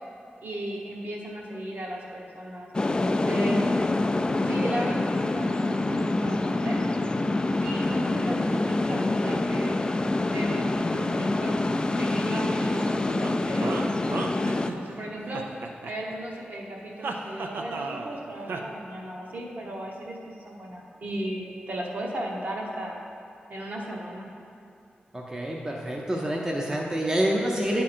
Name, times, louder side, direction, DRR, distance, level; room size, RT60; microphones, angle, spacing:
voice 1, 0.4-3.6 4.4-6.8 7.6-9.8 10.3-11.6 12.0-13.9 14.6-15.5 15.8-23.0 23.5-24.3, right 1 dB, 55° right, -3 dB, 1.2 m, -35 dB
sound 1, 2.7-14.7, left 2 dB, 25° left, 0.3 m, -26 dB
sound 2, 13.2-15.0 15.3-16.4 17.0-18.2 18.5-18.6, right 3 dB, 80° right, 0.5 m, -34 dB
voice 2, 25.1-27.8, right 1 dB, 20° right, -2 dB, 0.6 m, -27 dB
9.8 x 3.7 x 4.3 m, 2.4 s
wide cardioid pair, 85°, 3 cm